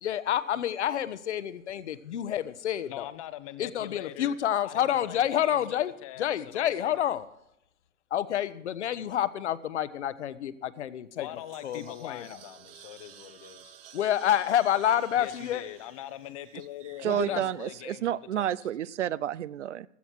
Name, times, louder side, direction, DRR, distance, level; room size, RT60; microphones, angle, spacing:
voice 1, 0.0-3.0 3.6-5.9 6.2-7.2 8.1-11.3 11.6-12.3 13.9-15.6 17.0-17.4, left 10 dB, 60° left, 15 dB, 1.1 m, -28 dB
voice 2, 2.9-4.4 4.6-7.2 11.2-13.7 15.2-18.6, left 13 dB, 25° left, 13 dB, 0.9 m, -43 dB
sound 1, 11.1-17.4, right 9 dB, 45° right, 1.4 m, -53 dB
voice 3, 17.0-19.9, right 11 dB, 65° right, 22 dB, 0.7 m, -30 dB
16.0 x 13.0 x 4.6 m, 0.79 s
hypercardioid pair, 160°, 40 cm